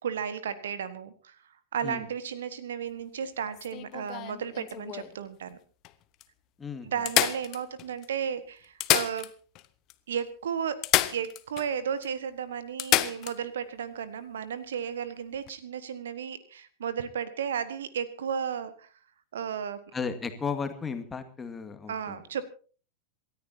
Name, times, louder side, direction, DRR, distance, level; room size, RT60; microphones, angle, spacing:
voice 1, 0.0-1.4 1.7-5.6 6.8-9.3 10.1-10.8 11.1-18.9 19.3-19.8 21.9-22.4, right 7 dB, 65° right, 14 dB, 1.4 m, -34 dB
sound 1, 3.5-5.2 5.8-5.9 6.2-6.3 7.1-8.1 8.6-9.7 9.9-10.0 10.8-11.7 12.0-12.1 12.8-13.4 15.3-15.5, left 15 dB, 35° left, 1.0 m, -28 dB
voice 2, 19.9-22.2, left 5 dB, 15° left, 7 dB, 2.1 m, -34 dB
27.5 x 14.0 x 2.8 m, 0.38 s
figure-of-eight pair, 90°, 0 cm